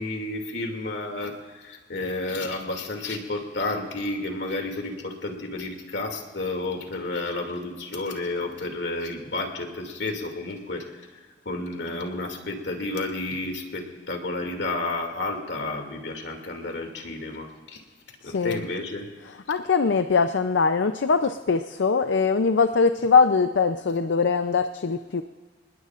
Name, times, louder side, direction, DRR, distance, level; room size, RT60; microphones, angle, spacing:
voice 1, 0.0-17.8 18.1-19.1, left 2 dB, 70° left, 3 dB, 2.6 m, -31 dB
voice 2, 18.2-18.6 19.2-25.2, left 5 dB, 85° left, 9 dB, 0.6 m, -22 dB
29.0 x 20.0 x 2.5 m, 1.5 s
head